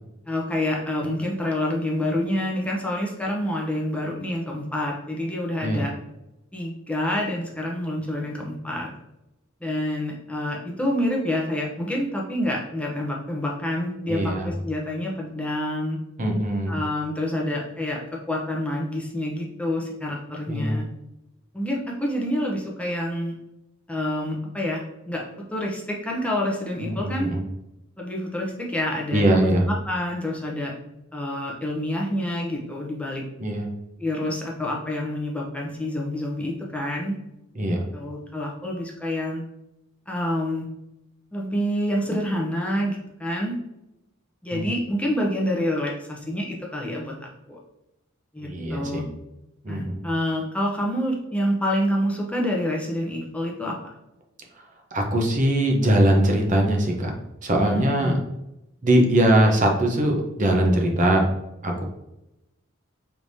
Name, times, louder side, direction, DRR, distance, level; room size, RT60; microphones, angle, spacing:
voice 1, 0.3-5.9 6.5-8.9 9.6-16.0 16.7-20.9 21.5-23.4 23.9-25.2 25.5-27.3 28.0-30.7 31.1-33.2 34.0-37.2 37.9-39.4 40.1-40.7 41.3-43.6 44.4-47.1 47.5-47.6 48.3-49.1 49.7-53.8 57.6-58.1, left 1 dB, 5° left, -2 dB, 0.7 m, -27 dB
voice 2, 14.1-14.5 16.2-16.8 20.5-20.8 26.8-27.4 29.1-29.7 33.4-33.7 37.6-37.8 44.5-44.6 48.4-49.0 49.6-50.0 54.9-57.1 57.4-58.2 58.8-61.2 61.6-61.8, right 1 dB, 40° right, 1 dB, 0.7 m, -21 dB
4.8 x 3.5 x 2.6 m, 0.90 s
head